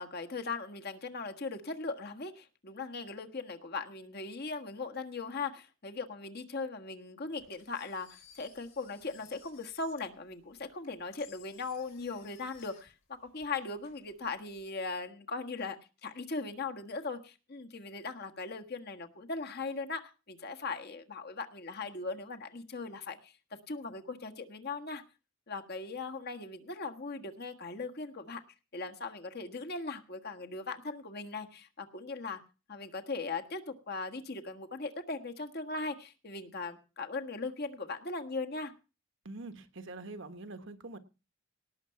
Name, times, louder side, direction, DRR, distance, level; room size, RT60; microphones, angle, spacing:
voice 1, 0.0-15.8 16.0-23.3 23.7-25.0 25.5-28.4 28.7-32.4 32.7-38.7, left 3 dB, 50° left, 5 dB, 1.5 m, -39 dB
Engine, 7.4-14.7, left 8 dB, 70° left, 6.5 m, -60 dB
voice 2, 39.2-41.0, right 2 dB, 60° right, 9 dB, 1.2 m, -44 dB
18.0 x 6.8 x 5.8 m, 0.33 s
head